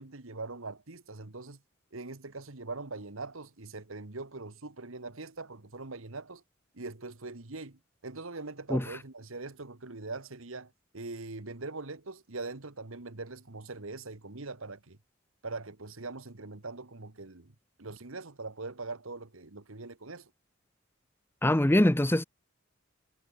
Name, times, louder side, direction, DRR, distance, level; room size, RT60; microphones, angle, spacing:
voice 1, 0.0-1.6 1.9-6.4 6.7-15.0 15.4-17.5 17.8-20.3, right 3 dB, 70° right, 1.7 m, -42 dB
voice 2, 21.4-22.2, left 1 dB, 10° left, 0.7 m, -23 dB
head